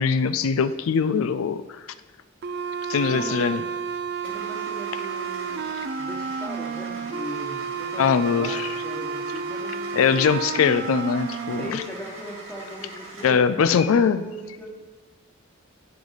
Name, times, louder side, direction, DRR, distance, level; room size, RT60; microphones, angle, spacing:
voice 1, 0.0-1.8 2.9-3.6 8.0-8.7 9.9-11.8 13.2-14.2, left 6 dB, 85° left, 12 dB, 0.4 m, -22 dB
sound 1, 2.4-11.7, right 6 dB, 55° right, 0.4 m, -31 dB
voice 2, 3.0-3.6 4.2-10.2 11.5-14.9, equal, 5° left, -2 dB, 1.3 m, -39 dB
Car / Engine starting, 4.2-13.5, right 1 dB, 90° right, 2.3 m, -42 dB
10.5 x 4.8 x 4.0 m, 1.3 s
head